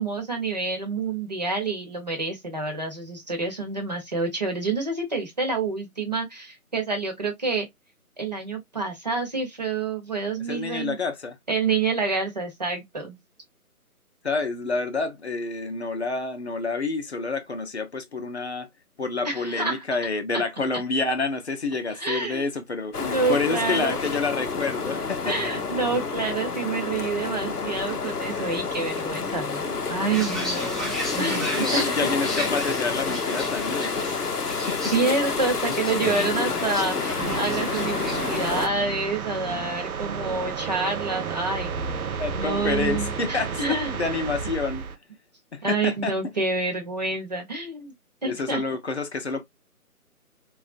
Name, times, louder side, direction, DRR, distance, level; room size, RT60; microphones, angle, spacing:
voice 1, 0.0-7.7 8.2-10.9 11.5-13.2 19.2-19.8 20.3-20.4 22.0-22.4 23.0-24.0 25.2-32.1 34.9-43.9 45.6-47.9 48.2-48.6, right 3 dB, 30° right, 0.7 m, -28 dB
voice 2, 10.5-11.4 14.2-18.7 19.0-23.0 23.3-25.6 31.6-34.2 34.5-34.8 42.2-45.0 45.5-46.1 48.2-49.4, left 3 dB, 45° left, 0.7 m, -28 dB
sound 1, 22.9-38.7, left 5 dB, 90° left, 0.7 m, -29 dB
sound 2, 30.1-38.6, right 1 dB, ahead, 0.4 m, -35 dB
sound 3, 37.2-45.0, right 6 dB, 70° right, 0.6 m, -32 dB
3.2 x 2.4 x 2.4 m
figure-of-eight pair, 150°, 45 cm